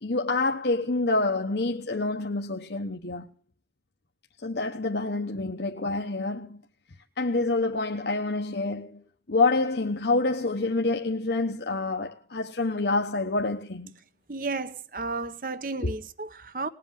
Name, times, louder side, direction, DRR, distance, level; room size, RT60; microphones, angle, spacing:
voice 1, 0.0-3.2 4.4-6.6 7.2-9.0 9.3-13.9 15.8-15.9, left 3 dB, 75° left, 1.1 m, -27 dB
voice 2, 14.3-16.7, right 3 dB, 50° right, 0.9 m, -33 dB
20.0 x 8.1 x 7.6 m
head